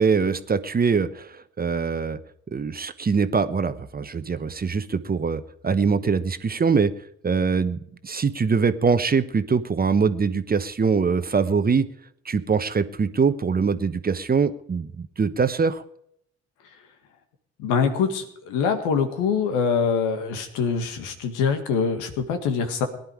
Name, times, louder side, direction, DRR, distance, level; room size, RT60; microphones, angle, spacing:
voice 1, 0.0-2.2 2.5-6.9 7.2-11.9 12.2-15.8, right 5 dB, 30° right, 11 dB, 1.1 m, -23 dB
voice 2, 17.6-22.9, left 6 dB, 75° left, 7 dB, 2.0 m, -24 dB
19.0 x 10.5 x 4.9 m, 0.71 s
hypercardioid pair, 50°, 32 cm